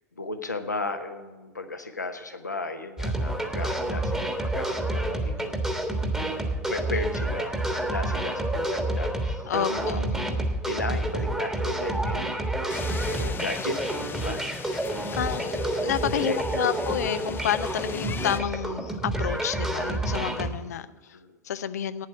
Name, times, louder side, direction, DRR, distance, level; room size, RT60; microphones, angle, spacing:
voice 1, 0.2-5.7 6.7-12.8 13.1-14.4 15.2-16.9 21.1-21.4, left 2 dB, 85° left, 7 dB, 0.9 m, -35 dB
sound 1, 3.0-20.5, right 1 dB, 5° right, 1.4 m, -29 dB
voice 2, 9.5-10.0 15.1-15.5 15.8-21.2 21.4-22.1, left 9 dB, 70° left, 12 dB, 0.4 m, -30 dB
sound 2, 12.7-18.4, left 6 dB, 25° left, 0.7 m, -38 dB
9.4 x 7.8 x 9.0 m, 1.2 s
figure-of-eight pair, 80°, 9 cm